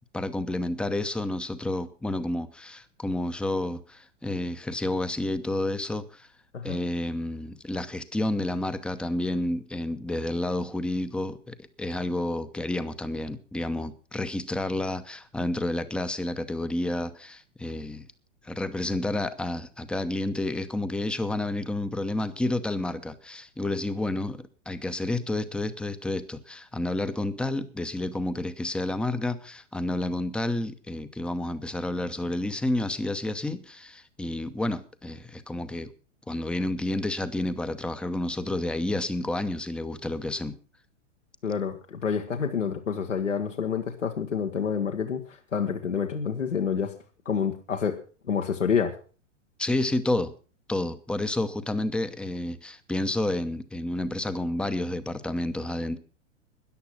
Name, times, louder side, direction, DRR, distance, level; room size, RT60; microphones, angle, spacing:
voice 1, 0.1-6.3 6.6-18.0 18.4-35.9 36.3-40.5 49.6-50.3 50.7-56.0, left 1 dB, 5° left, 12 dB, 0.8 m, -30 dB
voice 2, 41.4-47.0 47.3-48.0 48.3-49.0, left 6 dB, 75° left, 3 dB, 1.7 m, -28 dB
13.5 x 10.5 x 6.0 m, 0.38 s
figure-of-eight pair, 105°, 37 cm